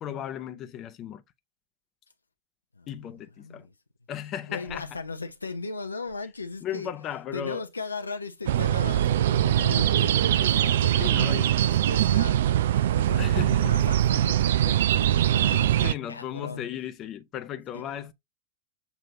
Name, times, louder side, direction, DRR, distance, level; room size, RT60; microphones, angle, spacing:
voice 1, 0.0-1.2 2.9-3.7 4.1-5.0 6.6-7.7 11.0-11.6 13.2-13.9 14.8-14.9 15.8-18.1, left 10 dB, 35° left, 0.6 m, -36 dB
voice 2, 2.8-3.7 4.5-6.9 7.3-12.4 12.9-16.7 17.7-17.8, left 3 dB, 80° left, 0.6 m, -37 dB
sound 1, 8.5-15.9, right 12 dB, 60° right, 0.3 m, -22 dB
6.9 x 2.8 x 2.7 m
figure-of-eight pair, 90°, 0 cm